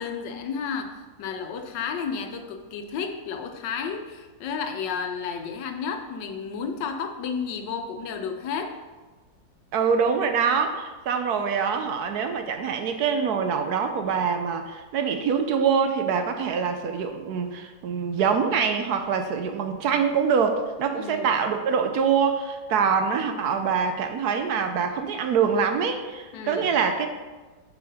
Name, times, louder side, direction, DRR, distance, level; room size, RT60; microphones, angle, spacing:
voice 1, 0.0-8.8 20.9-21.4 26.3-26.7, left 6 dB, 85° left, 6 dB, 1.4 m, -32 dB
voice 2, 9.7-27.1, right 6 dB, 70° right, 7 dB, 1.1 m, -24 dB
7.3 x 5.7 x 4.2 m, 1.3 s
omnidirectional pair, 1.9 m